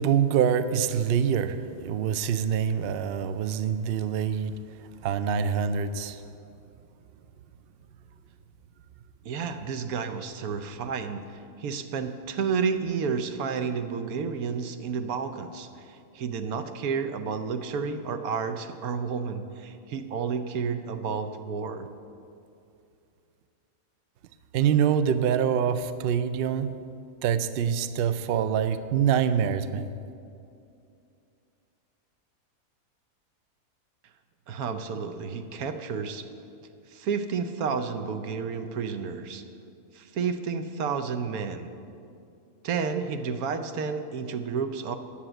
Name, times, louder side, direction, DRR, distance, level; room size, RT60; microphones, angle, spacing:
voice 1, 0.0-4.6 5.0-6.2 24.5-26.8 27.2-29.9, right 8 dB, 70° right, 12 dB, 0.5 m, -25 dB
voice 2, 9.2-11.3 11.6-21.9 34.5-36.2 36.9-39.4 39.9-41.7 42.6-45.0, right 5 dB, 85° right, 8 dB, 1.2 m, -31 dB
10.0 x 7.3 x 7.8 m, 2.5 s
omnidirectional pair, 1.5 m